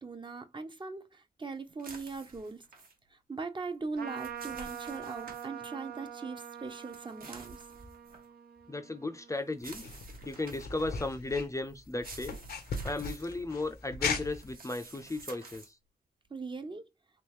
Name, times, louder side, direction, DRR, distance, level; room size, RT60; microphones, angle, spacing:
voice 1, 0.0-2.6 3.1-7.6 16.3-16.9, right 4 dB, 30° right, 0.6 m, -40 dB
sound 1, 1.8-2.9 3.9-5.5 6.7-8.3 9.5-10.8 11.8-13.2 14.2-15.7, right 3 dB, 70° right, 1.2 m, -50 dB
Trumpet, 4.0-9.8, right 9 dB, 85° right, 0.7 m, -44 dB
voice 2, 8.7-9.8 10.3-12.4 12.8-15.7, left 2 dB, 20° left, 0.4 m, -35 dB
sound 2, 9.6-14.5, left 4 dB, 90° left, 0.8 m, -38 dB
3.4 x 3.1 x 2.9 m
wide cardioid pair, 80°, 16 cm